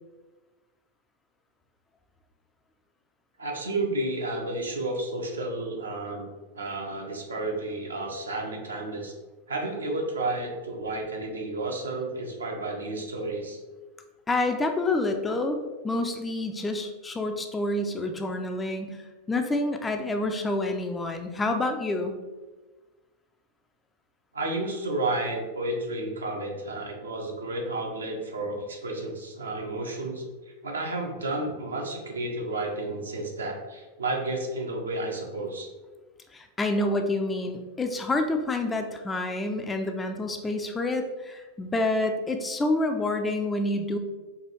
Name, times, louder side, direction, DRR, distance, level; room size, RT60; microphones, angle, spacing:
voice 1, 3.4-6.3 6.5-9.1 9.5-13.6 24.3-30.2 30.6-35.7, right 2 dB, 75° right, 1 dB, 0.7 m, -31 dB
voice 2, 14.3-15.6 15.8-19.0 19.3-22.2 36.3-44.0, left 2 dB, 15° left, 5 dB, 0.4 m, -28 dB
4.6 x 2.3 x 3.1 m, 1.2 s
figure-of-eight pair, 90°, 0 cm